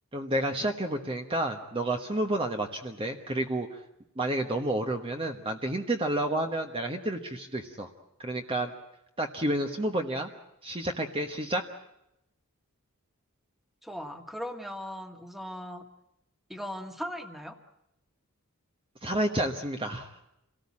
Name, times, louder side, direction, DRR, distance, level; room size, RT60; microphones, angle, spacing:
voice 1, 0.1-3.8 4.2-7.9 8.2-8.7 9.2-10.3 10.6-11.7 19.0-20.2, right 1 dB, 25° right, 4 dB, 1.2 m, -30 dB
voice 2, 13.8-15.8 16.5-17.6, equal, ahead, 6 dB, 1.7 m, -38 dB
27.0 x 18.0 x 8.5 m, 0.85 s
head